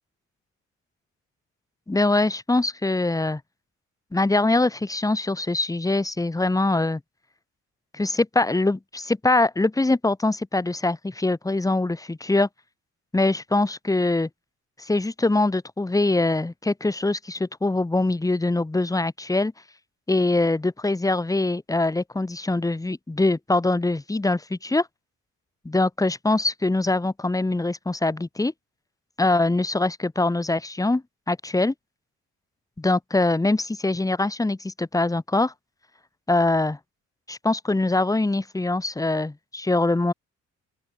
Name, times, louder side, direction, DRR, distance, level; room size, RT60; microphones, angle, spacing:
voice 1, 1.9-3.4 4.1-7.0 7.9-12.5 13.1-14.3 14.8-19.5 20.1-24.9 25.6-28.5 29.2-31.0 31.3-31.7 32.8-35.5 36.3-36.8 37.3-40.1, left 2 dB, 10° left, 1.3 m, -23 dB
open air
cardioid pair, 90°, 30 cm